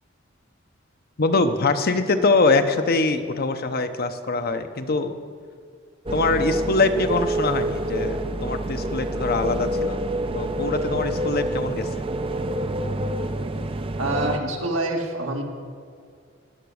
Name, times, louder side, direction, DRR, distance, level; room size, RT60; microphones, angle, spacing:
voice 1, 1.2-5.1 6.1-10.0 10.3-11.9, left 3 dB, 50° left, 8 dB, 0.8 m, -23 dB
sound 1, 6.1-14.4, right 1 dB, 30° right, 0.6 m, -27 dB
voice 2, 14.0-15.4, right 2 dB, 80° right, 1 dB, 2.2 m, -26 dB
14.0 x 10.0 x 6.4 m, 2.2 s
head